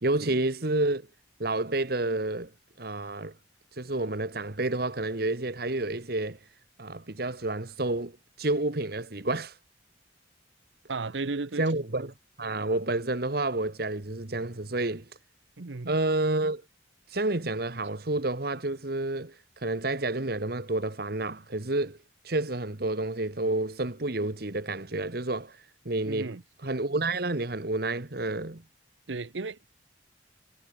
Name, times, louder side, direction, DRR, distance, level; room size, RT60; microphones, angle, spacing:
voice 1, 0.0-1.0 1.4-2.5 2.8-3.3 3.7-6.4 6.8-9.6 11.6-15.0 15.9-16.6 17.1-22.0 22.2-26.3 26.6-28.6, right 2 dB, 55° right, 1.5 m, -29 dB
voice 2, 10.9-11.7 15.6-15.9 26.1-26.4 29.1-29.7, right 3 dB, 75° right, 0.9 m, -34 dB
head